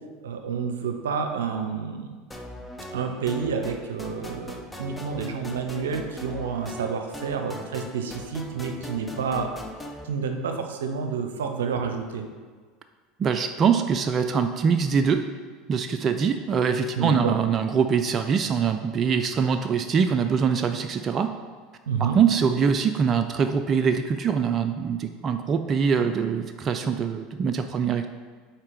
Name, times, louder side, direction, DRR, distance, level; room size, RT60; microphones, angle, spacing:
voice 1, 0.2-2.2 2.9-9.5 10.0-12.2 17.0-17.4 21.9-22.2, right 6 dB, 85° right, 5 dB, 0.6 m, -29 dB
sound 1, 2.3-10.0, equal, 10° left, 0.6 m, -40 dB
voice 2, 13.2-15.3 15.7-21.3 22.0-28.1, right 6 dB, 35° right, 7 dB, 0.3 m, -23 dB
4.4 x 4.4 x 5.0 m, 1.5 s
hypercardioid pair, 85°, 0 cm